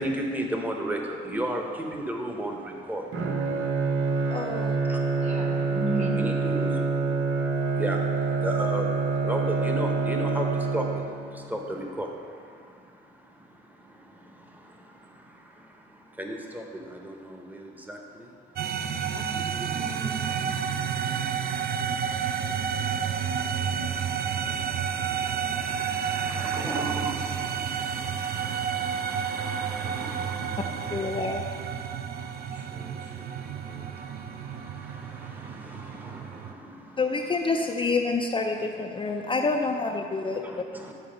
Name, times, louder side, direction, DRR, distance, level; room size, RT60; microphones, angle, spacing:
voice 1, 0.0-5.4 6.2-6.8 7.6-12.8 13.3-13.4 13.8-18.3 24.3-31.2 32.1-37.0 40.4-40.9, right 1 dB, 10° right, 2 dB, 0.9 m, -36 dB
Bowed string instrument, 3.1-11.4, right 4 dB, 80° right, 0.8 m, -26 dB
voice 2, 4.3-4.8 30.9-31.4 31.7-31.8 37.0-40.4, left 3 dB, 25° left, 2 dB, 0.4 m, -27 dB
voice 3, 5.2-6.2 19.1-20.5 25.2-25.8, right 1 dB, 35° right, 1 dB, 1.3 m, -36 dB
sound 1, 18.6-36.5, right 7 dB, 50° right, 0.4 m, -30 dB
9.5 x 4.1 x 5.1 m, 2.3 s
cardioid pair, 90°, 20 cm